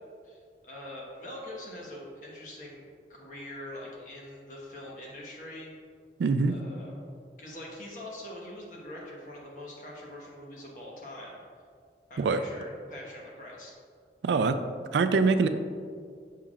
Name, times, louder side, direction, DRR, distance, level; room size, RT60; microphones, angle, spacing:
voice 1, 0.2-2.8 3.1-5.7 6.5-6.9 7.4-11.4 12.1-13.8, left 1 dB, 45° left, -3 dB, 1.2 m, -43 dB
voice 2, 6.2-6.5 12.2-12.4 14.2-14.6 14.9-15.5, right 4 dB, 75° right, 10 dB, 0.3 m, -23 dB
7.1 x 5.5 x 2.4 m, 2.2 s
head